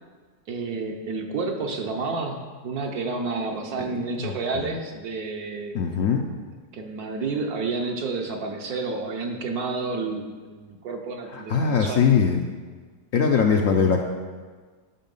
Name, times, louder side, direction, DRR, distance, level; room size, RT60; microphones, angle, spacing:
voice 1, 0.5-6.0 6.7-12.1, right 3 dB, 60° right, 3 dB, 1.4 m, -30 dB
voice 2, 4.2-4.7 5.7-6.3 11.3-12.4 13.1-14.0, left 6 dB, 65° left, 3 dB, 0.9 m, -21 dB
11.5 x 5.7 x 5.4 m, 1.5 s
omnidirectional pair, 1.9 m